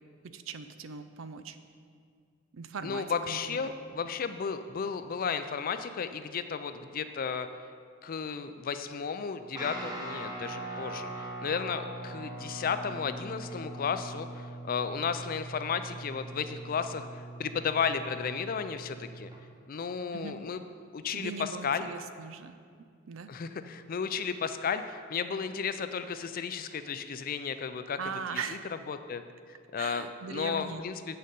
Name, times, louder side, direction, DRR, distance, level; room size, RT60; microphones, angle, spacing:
voice 1, 0.2-1.6 2.5-3.7 20.1-20.4 21.1-22.6 23.1-23.3 28.0-28.6 29.8-30.9, right 5 dB, 80° right, 10 dB, 0.5 m, -40 dB
voice 2, 2.8-7.5 8.0-19.3 19.7-20.6 20.9-21.9 23.3-28.0 28.3-28.4 28.9-29.2 29.5-31.2, left 6 dB, 45° left, 10 dB, 0.4 m, -34 dB
Guitar, 9.5-19.4, right 1 dB, 20° right, 1.2 m, -41 dB
7.7 x 6.5 x 5.3 m, 2.1 s
head